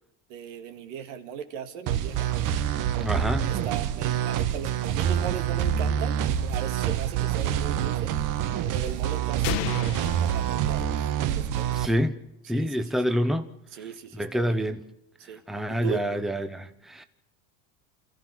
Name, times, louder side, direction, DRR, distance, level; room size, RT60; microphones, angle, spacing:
voice 1, 0.3-2.3 3.4-8.2 8.7-11.9 12.4-13.1 13.7-14.6 15.2-15.4 15.7-16.0, right 8 dB, 80° right, 2.2 m, -38 dB
sound 1, 1.9-11.9, right 10 dB, 55° right, 1.2 m, -26 dB
voice 2, 3.0-3.5 11.7-12.1 12.5-13.5 14.2-14.8 15.5-17.0, equal, ahead, 0.9 m, -27 dB
sound 2, 9.4-11.4, left 11 dB, 75° left, 1.3 m, -33 dB
29.5 x 14.0 x 6.3 m
supercardioid pair, 115°, 38 cm